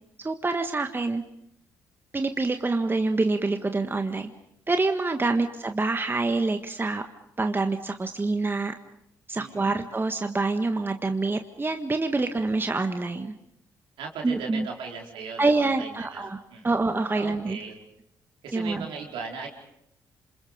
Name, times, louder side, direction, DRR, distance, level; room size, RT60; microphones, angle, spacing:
voice 1, 0.2-1.2 2.1-4.3 4.7-7.0 7.4-8.7 9.3-13.3 14.2-14.7 15.4-16.4 16.6-17.6 18.5-18.9, right 3 dB, 25° right, 7 dB, 1.6 m, -26 dB
voice 2, 9.3-9.8 12.2-12.3 14.0-16.8 17.1-17.8 18.4-19.5, right 5 dB, 70° right, 1 dB, 4.6 m, -38 dB
28.0 x 27.0 x 5.2 m, 0.77 s
hypercardioid pair, 45°, 9 cm